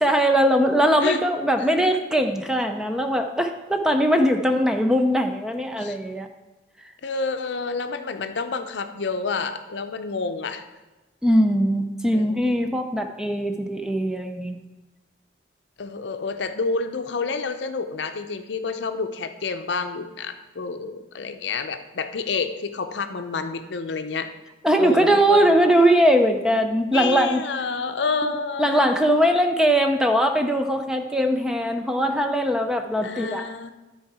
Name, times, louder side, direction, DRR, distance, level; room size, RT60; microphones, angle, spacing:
voice 1, 0.0-6.3 11.2-14.6 24.6-27.4 28.6-33.4, equal, 5° right, 5 dB, 0.4 m, -20 dB
voice 2, 7.0-10.6 12.1-12.6 15.8-24.3 24.8-25.6 26.9-28.8 33.0-33.7, left 4 dB, 70° left, 8 dB, 0.6 m, -29 dB
11.5 x 4.6 x 4.7 m, 1.1 s
head